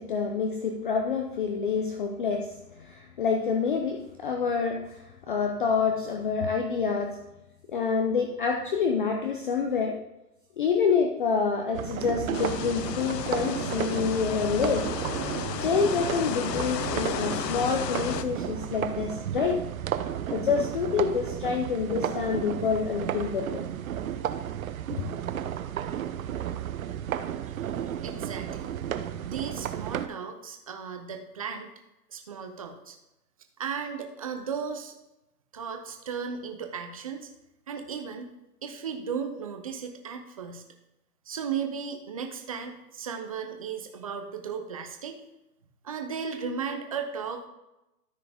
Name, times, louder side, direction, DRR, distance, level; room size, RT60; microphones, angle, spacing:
voice 1, 0.0-7.2 7.7-10.0 10.6-14.9 15.6-19.6 20.3-23.6, left 5 dB, 30° left, 2 dB, 0.6 m, -27 dB
sound 1, 11.7-30.1, right 10 dB, 60° right, 0.7 m, -33 dB
sound 2, 12.3-18.2, left 9 dB, 80° left, 0.7 m, -34 dB
voice 2, 28.0-28.7 29.2-31.7 32.1-33.0 33.6-34.9 35.5-37.3 37.7-38.3 38.6-40.6 41.3-45.2 45.8-47.5, right 6 dB, 25° right, 5 dB, 0.5 m, -35 dB
13.5 x 4.7 x 3.5 m, 0.93 s
hypercardioid pair, 160°, 49 cm